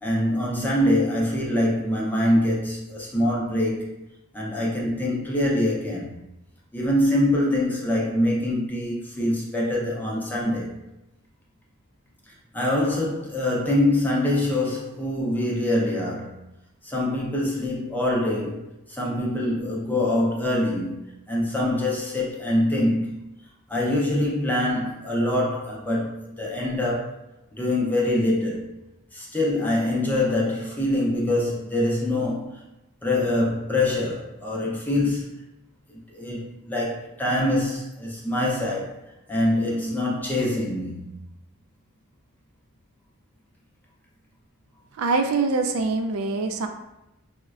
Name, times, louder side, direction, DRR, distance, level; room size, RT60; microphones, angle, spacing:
voice 1, 0.0-3.8 4.3-6.1 6.7-10.7 12.5-16.4 16.8-18.6 18.9-21.0 21.3-23.2 23.7-27.1 27.6-28.7 29.1-32.6 33.0-35.3 36.1-39.0 39.3-41.0, left 1 dB, 10° left, 0.5 m, -24 dB
voice 2, 45.0-46.7, right 3 dB, 70° right, 0.4 m, -24 dB
4.9 x 2.1 x 2.3 m
head